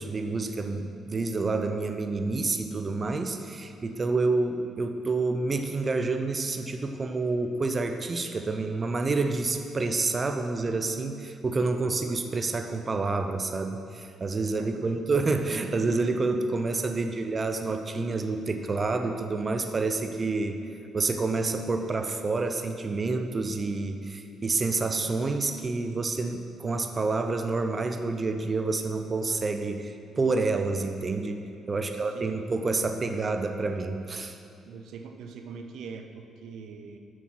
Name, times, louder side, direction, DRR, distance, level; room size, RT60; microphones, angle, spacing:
voice 1, 0.0-20.6 20.9-34.4, right 3 dB, 35° right, 6 dB, 0.5 m, -28 dB
voice 2, 14.6-15.0 17.0-17.1 31.7-32.3 34.7-37.0, right 5 dB, 80° right, 5 dB, 0.6 m, -43 dB
7.2 x 6.2 x 5.8 m, 2.5 s
cardioid pair, 90°, 0 cm